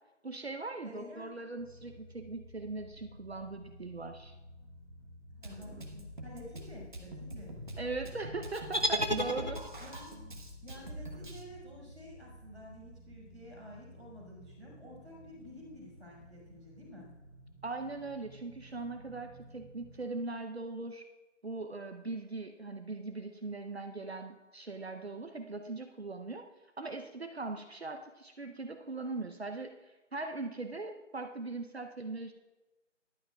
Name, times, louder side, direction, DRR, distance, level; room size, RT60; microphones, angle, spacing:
voice 1, 0.2-4.3 7.8-9.6 17.6-21.0 21.4-26.4 26.8-32.3, right 3 dB, 55° right, 6 dB, 0.8 m, -40 dB
voice 2, 0.8-1.3 5.3-7.6 9.2-9.5 9.8-10.2 10.6-17.1, equal, 5° left, -17 dB, 1.8 m, -51 dB
sound 1, 1.6-20.0, equal, 20° left, 1.9 m, -54 dB
Drum kit, 5.4-11.4, equal, 40° right, 1.2 m, -45 dB
sound 2, 8.7-10.0, equal, 40° left, 0.5 m, -32 dB
14.0 x 11.5 x 2.4 m, 1.1 s
figure-of-eight pair, 175°, 37 cm